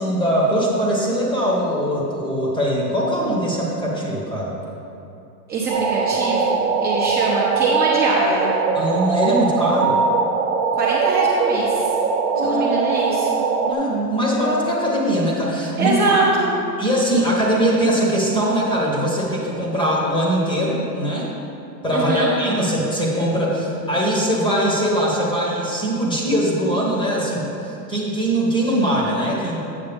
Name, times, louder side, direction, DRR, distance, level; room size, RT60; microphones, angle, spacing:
voice 1, 0.0-4.6 8.7-10.0 12.3-12.7 13.6-16.2 16.8-21.3 21.8-29.6, equal, 10° left, -4 dB, 1.2 m, -21 dB
voice 2, 5.5-8.5 10.7-11.9 12.4-13.4 15.8-16.5 21.9-22.3, right 3 dB, 20° right, -6 dB, 0.9 m, -23 dB
sound 1, 5.7-13.7, right 4 dB, 85° right, 1.0 m, -21 dB
8.3 x 6.3 x 3.5 m, 2.8 s
hypercardioid pair, 135°, 47 cm